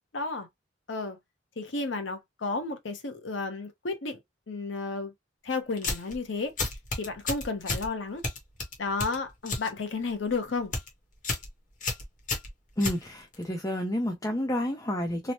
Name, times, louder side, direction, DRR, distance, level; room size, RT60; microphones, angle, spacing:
voice 1, 0.1-0.5 0.9-1.2 1.6-4.2 4.5-5.1 5.4-6.5 7.0-8.2 8.8-10.7, left 3 dB, 85° left, 0.8 m, -32 dB
sound 1, 5.8-6.2 6.6-7.9 8.2-9.7 10.0-10.3 10.6-10.9 11.2-11.5 11.8-13.4, left 3 dB, 45° left, 0.9 m, -32 dB
voice 2, 12.8-15.3, left 1 dB, 20° left, 0.5 m, -30 dB
3.0 x 2.0 x 2.8 m
head